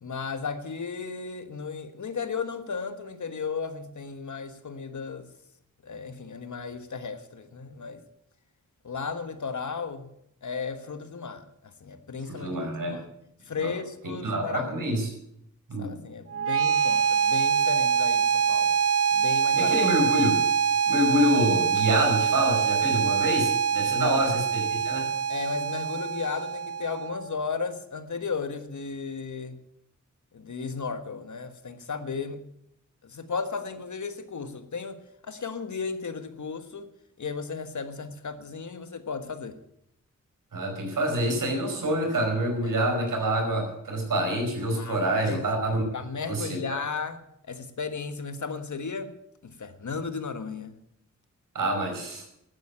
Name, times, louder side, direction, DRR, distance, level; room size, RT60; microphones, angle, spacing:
voice 1, 0.0-5.3 5.8-8.0 8.8-10.1 10.4-12.5 12.9-13.1 13.4-14.7 15.8-18.8 19.1-19.8 23.9-24.2 25.3-29.6 30.3-32.4 33.0-36.9 37.2-39.6 42.6-42.7 44.8-45.5 45.9-49.1 49.4-50.7, left 5 dB, 65° left, 1.5 m, -35 dB
voice 2, 12.3-13.0 13.6-13.7 14.0-15.1 15.7-16.0 19.5-20.4 20.9-25.1 40.5-46.0 46.3-46.8 51.6-52.2, right 1 dB, 85° right, 5.2 m, -27 dB
sound 1, 16.3-27.3, right 7 dB, 50° right, 0.4 m, -24 dB
13.0 x 9.3 x 9.7 m
cardioid pair, 65°, 32 cm